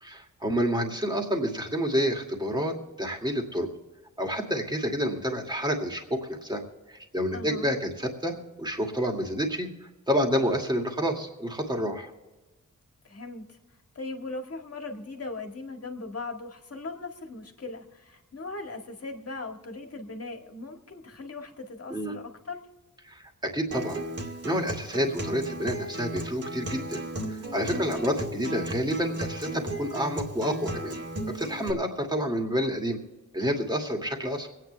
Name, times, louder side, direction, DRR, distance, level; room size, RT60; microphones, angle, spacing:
voice 1, 0.0-3.7 4.2-6.6 6.9-9.7 10.1-12.1 21.9-22.2 23.0-24.0 24.4-27.0 27.3-31.0 31.3-33.0 33.3-34.5, equal, 15° right, 2 dB, 2.4 m, -29 dB
voice 2, 7.3-7.7 13.0-13.6 14.0-22.6 27.7-28.1, left 3 dB, 50° left, 3 dB, 1.9 m, -39 dB
Acoustic guitar, 23.7-31.7, right 1 dB, 50° right, 2.2 m, -35 dB
24.5 x 9.4 x 3.4 m, 1.2 s
wide cardioid pair, 110°, 32 cm